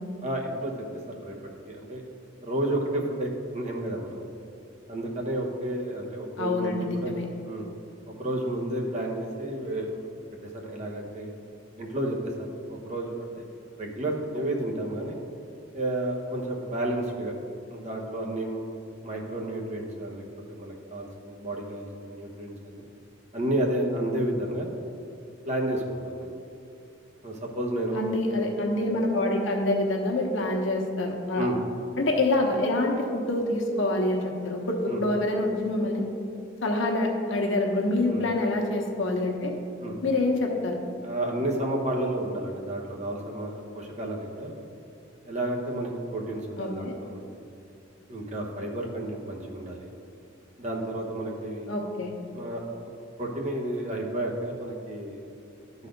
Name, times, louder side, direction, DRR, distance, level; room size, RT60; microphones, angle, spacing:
voice 1, 0.2-0.7 1.1-1.4 1.6-2.0 2.4-4.3 4.9-7.1 7.4-7.6 8.2-10.2 10.5-11.3 11.8-13.4 13.8-15.2 15.7-17.3 17.7-18.6 19.0-22.8 23.3-24.8 25.5-26.3 27.2-28.2 31.4-31.6 34.9-35.0 38.1-38.2 39.8-40.0 41.0-44.5 45.2-47.3 48.1-49.9 50.6-51.7 52.3-52.9 53.2-55.2, right 1 dB, 40° right, 0 dB, 1.0 m, -31 dB
voice 2, 6.4-7.2 27.9-31.5 32.0-36.0 36.6-39.5 40.0-40.8 46.6-46.9 51.7-52.1, left 2 dB, 85° left, 1 dB, 1.1 m, -26 dB
11.5 x 4.1 x 5.2 m, 2.5 s
head